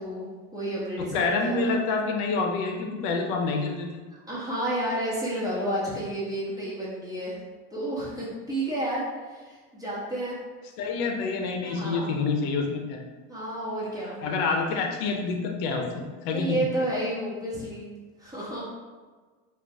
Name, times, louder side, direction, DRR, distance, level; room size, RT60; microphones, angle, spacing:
voice 1, 0.0-1.8 4.1-7.4 7.7-10.4 11.6-12.1 13.3-14.2 16.3-17.9 18.2-18.7, right 1 dB, 10° right, -7 dB, 1.5 m, -31 dB
voice 2, 1.0-3.9 10.8-13.0 14.2-16.6, left 4 dB, 65° left, 2 dB, 0.8 m, -27 dB
3.8 x 2.6 x 3.5 m, 1.4 s
supercardioid pair, 115°, 38 cm